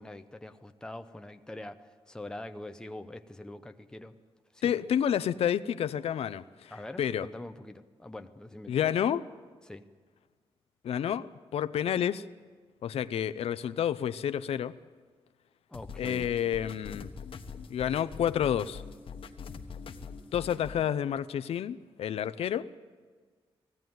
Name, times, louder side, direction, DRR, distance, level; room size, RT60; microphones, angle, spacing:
voice 1, 0.0-4.2 4.5-4.8 6.7-8.9 9.6-9.9 15.7-16.3, left 1 dB, 5° left, 7 dB, 0.7 m, -44 dB
voice 2, 4.6-6.7 7.0-7.3 8.7-9.2 10.8-12.2 12.8-14.7 16.0-17.1 17.7-18.8 20.3-22.7, left 9 dB, 80° left, 13 dB, 0.5 m, -29 dB
sound 1, 15.7-20.8, left 5 dB, 65° left, 1.1 m, -43 dB
18.5 x 15.5 x 9.3 m, 1.5 s
wide cardioid pair, 170°, 10 cm